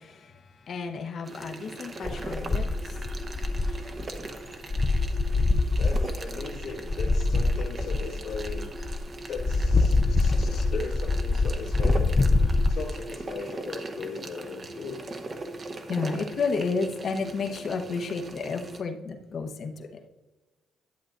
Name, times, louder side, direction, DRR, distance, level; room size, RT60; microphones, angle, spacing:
voice 1, 0.0-4.6 10.1-10.3 15.9-19.9, left 4 dB, 55° left, 5 dB, 0.9 m, -33 dB
sound 1, 1.2-18.8, right 2 dB, 40° right, 0.9 m, -40 dB
sound 2, 2.0-4.3 4.7-9.0 9.4-12.7, left 3 dB, 30° left, 0.4 m, -25 dB
voice 2, 5.8-8.7 9.3-12.1 12.7-15.1, left 4 dB, 85° left, -5 dB, 1.9 m, -38 dB
11.5 x 7.6 x 2.5 m, 1.1 s
cardioid pair, 90°, 0 cm